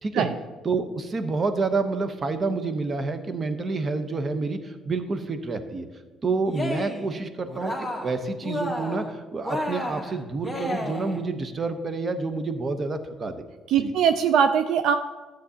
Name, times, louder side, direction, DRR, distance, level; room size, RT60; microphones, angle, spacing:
voice 1, 0.6-5.9 6.2-7.7 8.0-13.4 13.8-13.9, right 3 dB, 40° right, 9 dB, 0.9 m, -28 dB
Cheering, 6.4-7.1 7.5-8.2 8.4-9.1 9.4-11.2, left 1 dB, ahead, 1.6 m, -31 dB
voice 2, 13.7-15.0, right 7 dB, 75° right, 9 dB, 0.4 m, -21 dB
12.5 x 7.6 x 2.8 m, 1.3 s
supercardioid pair, 70°, 0 cm